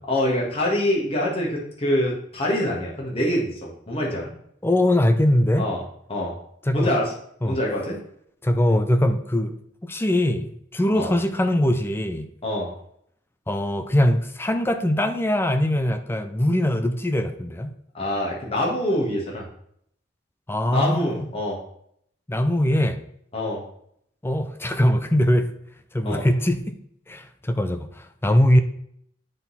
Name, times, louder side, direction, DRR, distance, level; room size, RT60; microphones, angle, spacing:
voice 1, 0.1-4.3 5.6-5.8 6.1-6.3 6.7-7.1 7.4-8.0 10.9-11.1 12.4-12.7 17.9-19.5 20.7-21.6 23.3-23.6 26.0-26.2, left 1 dB, 30° left, 1.8 m, -25 dB
voice 2, 4.6-5.6 6.7-6.9 7.4-7.6 8.4-12.3 13.5-17.7 20.5-21.3 22.3-23.0 24.2-25.6 25.9-26.8 27.1-28.6, left 1 dB, 15° left, 0.5 m, -22 dB
9.0 x 4.0 x 4.2 m
head